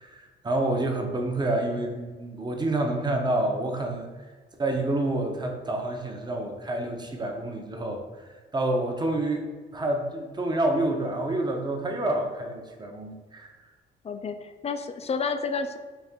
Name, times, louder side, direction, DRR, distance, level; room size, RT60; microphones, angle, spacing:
voice 1, 0.0-4.1 4.6-9.4 9.7-13.6, right 1 dB, 20° right, 3 dB, 0.7 m, -28 dB
voice 2, 14.0-15.8, left 4 dB, 30° left, 8 dB, 0.4 m, -30 dB
4.1 x 2.5 x 3.6 m, 1.4 s
cardioid pair, 90°, 20 cm